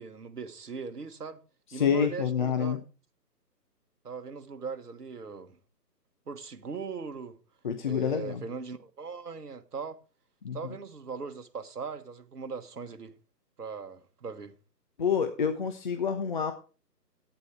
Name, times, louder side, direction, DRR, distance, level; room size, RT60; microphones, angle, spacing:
voice 1, 0.0-1.4 1.7-2.8 4.0-5.6 6.3-7.4 7.8-10.0 10.5-13.2 13.6-14.5, right 5 dB, 65° right, 1.6 m, -39 dB
voice 2, 1.7-2.8 7.6-8.4 10.4-10.7 15.0-16.5, left 7 dB, 30° left, 0.9 m, -28 dB
11.5 x 9.2 x 4.7 m
figure-of-eight pair, 145°, 50 cm